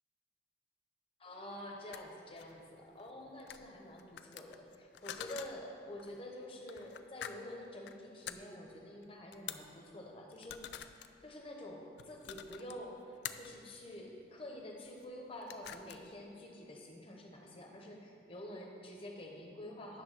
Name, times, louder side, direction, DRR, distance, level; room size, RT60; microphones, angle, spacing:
voice 1, 1.2-10.9 11.2-20.0, left 1 dB, 30° left, 0 dB, 1.0 m, -48 dB
sound 1, 1.8-2.0 2.4-3.1 3.4-3.7 4.0-5.5 6.0-6.2 6.7-7.3 7.6-7.9 8.3-8.4 9.0-9.1 9.3-9.7 10.3-11.1 12.0-12.7 13.2-13.5 14.8-15.1 15.3-16.1, left 10 dB, 65° left, 0.3 m, -46 dB
10.5 x 3.4 x 6.5 m, 2.4 s
head